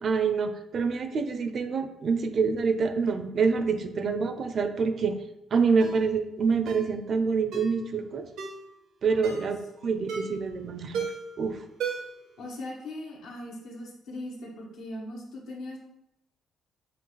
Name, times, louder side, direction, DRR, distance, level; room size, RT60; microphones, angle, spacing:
voice 1, 0.0-5.2 5.5-8.3 9.0-11.1 11.4-11.6, right 5 dB, 55° right, 8 dB, 0.5 m, -26 dB
Ringtone, 5.8-6.0 6.7-6.9 7.5-7.8 8.4-8.6 9.2-9.5 10.1-10.4 10.9-11.3 11.8-12.2 12.6-12.7, right 5 dB, 85° right, 0.7 m, -34 dB
voice 2, 9.1-9.5 9.8-10.0 12.4-15.8, left 1 dB, 85° left, -2 dB, 1.1 m, -40 dB
5.7 x 2.4 x 3.2 m, 0.84 s
cardioid pair, 90°, 0 cm